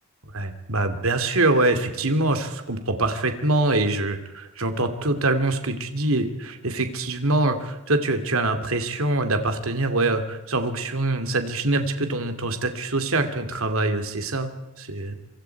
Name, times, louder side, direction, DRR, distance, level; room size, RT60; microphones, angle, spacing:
voice 1, 0.3-15.1, right 2 dB, 70° right, 7 dB, 2.7 m, -24 dB
26.5 x 25.0 x 4.7 m, 0.98 s
head